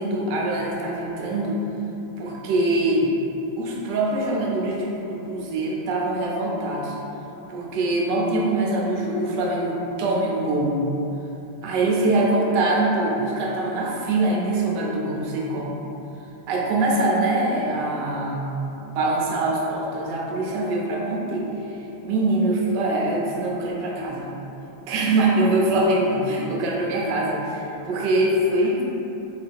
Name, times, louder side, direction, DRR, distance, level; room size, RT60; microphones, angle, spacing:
voice 1, 0.0-1.6 2.2-3.1 3.6-6.9 7.5-10.8 11.6-15.8 16.5-18.6 18.8-24.3 24.9-28.8, right 2 dB, 70° right, -3 dB, 1.1 m, -23 dB
3.5 x 2.7 x 3.5 m, 2.9 s
omnidirectional pair, 2.3 m